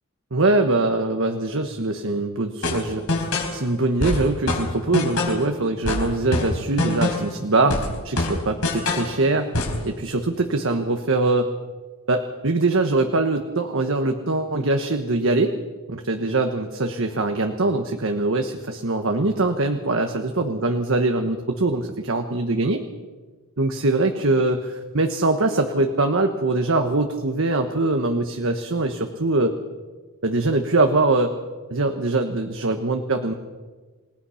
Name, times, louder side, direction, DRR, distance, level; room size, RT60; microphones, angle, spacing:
voice 1, 0.3-9.5 9.8-11.5 12.1-15.5 15.9-22.8 23.6-29.5 30.2-31.3 31.7-33.3, right 2 dB, 65° right, 6 dB, 1.3 m, -22 dB
sound 1, 2.6-3.6 4.0-5.5 5.8-7.4 7.7-9.1 9.5-9.8, left 2 dB, 85° left, 4.9 m, -24 dB
28.5 x 18.5 x 5.8 m, 1.4 s
head